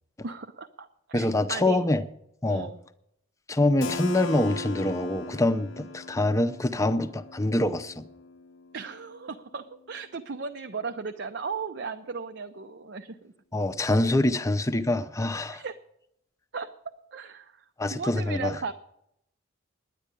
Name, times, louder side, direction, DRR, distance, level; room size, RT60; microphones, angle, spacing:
voice 1, 0.2-1.8 2.5-2.8 5.8-5.9 8.7-13.3 15.5-15.8 16.5-16.7 17.1-17.6 17.9-18.7, right 5 dB, 55° right, 0.5 m, -36 dB
voice 2, 1.1-2.0 2.4-2.7 3.5-8.0 13.5-15.6 17.8-18.6, left 1 dB, 15° left, 0.6 m, -25 dB
Keyboard (musical), 3.8-9.4, left 2 dB, 75° left, 0.7 m, -39 dB
10.0 x 9.9 x 8.3 m
head